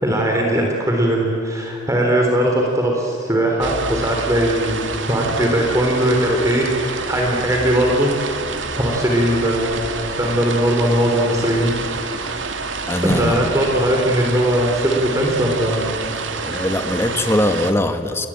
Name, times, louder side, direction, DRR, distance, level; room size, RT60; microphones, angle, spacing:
voice 1, 0.0-4.8 5.1-8.1 8.8-9.8 10.2-11.7 12.2-12.4 13.0-15.9, equal, 15° right, 0 dB, 3.6 m, -19 dB
sound 1, 3.6-17.7, right 4 dB, 85° right, 2.3 m, -28 dB
voice 2, 12.9-13.5 16.4-18.3, left 1 dB, 15° left, 7 dB, 1.6 m, -21 dB
29.5 x 21.0 x 8.8 m, 2.6 s
head